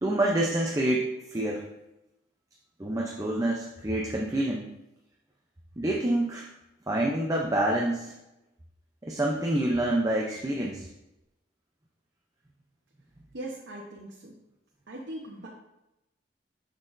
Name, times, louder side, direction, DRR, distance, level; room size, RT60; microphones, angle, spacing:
voice 1, 0.0-1.7 2.8-4.8 5.8-6.5 6.9-8.1 9.0-10.9, right 1 dB, 20° right, -2 dB, 0.6 m, -27 dB
voice 2, 13.3-14.4 14.9-15.5, right 1 dB, 85° right, -3 dB, 0.9 m, -40 dB
6.4 x 6.0 x 2.6 m, 0.92 s
head